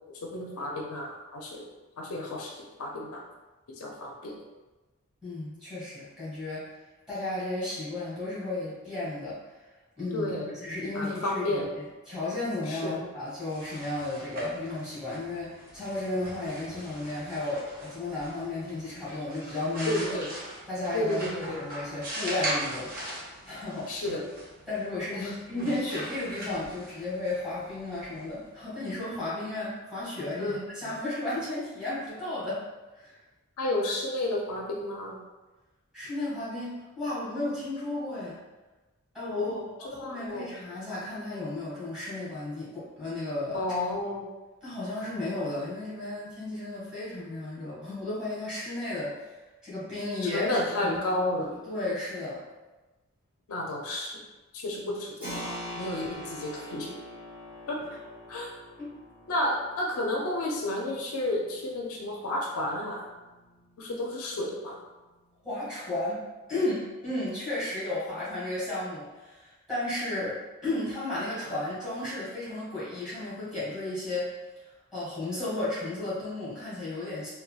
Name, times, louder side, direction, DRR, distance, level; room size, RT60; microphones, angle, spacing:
voice 1, 0.2-1.6 2.0-3.2 3.8-4.3 10.1-10.6 10.9-11.7 12.7-13.0 19.9-20.3 20.9-21.6 23.9-24.2 25.1-25.7 30.4-30.6 33.6-35.2 39.3-40.5 43.5-44.3 50.3-51.5 53.5-54.1 54.5-56.9 57.7-57.8 58.3-58.5 59.3-63.0 63.8-64.8, left 1 dB, 75° left, 0 dB, 0.5 m, -32 dB
voice 2, 5.2-6.7 7.1-9.4 10.0-10.3 10.6-20.2 20.7-23.1 23.4-24.0 24.7-32.6 32.9-33.1 35.9-38.4 39.1-39.5 39.8-43.6 44.6-49.3 49.6-52.4 58.8-58.9 65.4-66.2 66.5-74.3 74.9-77.3, left 2 dB, 5° right, -11 dB, 1.5 m, -34 dB
sound 1, 13.3-29.0, right 1 dB, 40° right, 0.8 m, -41 dB
Keyboard (musical), 55.2-65.6, equal, 25° right, 1.1 m, -45 dB
3.9 x 2.3 x 2.3 m, 1.2 s
head